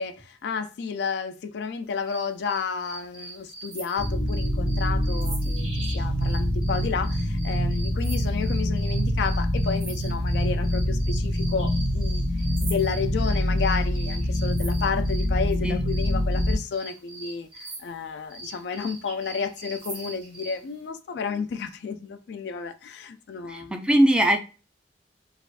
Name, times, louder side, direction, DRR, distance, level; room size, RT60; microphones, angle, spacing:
voice 1, 0.0-5.7 5.9-12.2 12.6-23.8, left 5 dB, 65° left, 0.3 m, -31 dB
sound 1, 2.1-15.3 15.9-20.6, right 2 dB, 80° right, 1.5 m, -42 dB
sound 2, 4.0-16.6, equal, 40° right, 1.3 m, -25 dB
voice 2, 23.5-24.4, right 1 dB, 5° right, 0.4 m, -20 dB
3.2 x 2.4 x 2.4 m
head